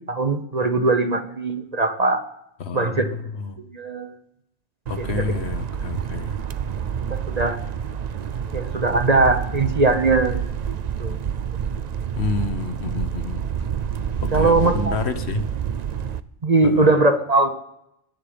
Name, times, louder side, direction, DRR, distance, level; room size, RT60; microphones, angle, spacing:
voice 1, 0.1-2.2 2.7-3.1 3.7-4.1 4.9-5.2 7.1-7.6 8.5-10.7 11.0-11.2 14.3-14.9 16.4-17.5, right 3 dB, 35° right, 7 dB, 1.1 m, -20 dB
voice 2, 2.6-3.6 4.9-6.4 12.2-13.4 14.2-15.4 16.6-16.9, left 4 dB, 60° left, 9 dB, 1.3 m, -28 dB
sound 1, 4.9-16.2, right 8 dB, 50° right, 0.5 m, -28 dB
21.5 x 9.2 x 5.1 m, 0.80 s
omnidirectional pair, 1.3 m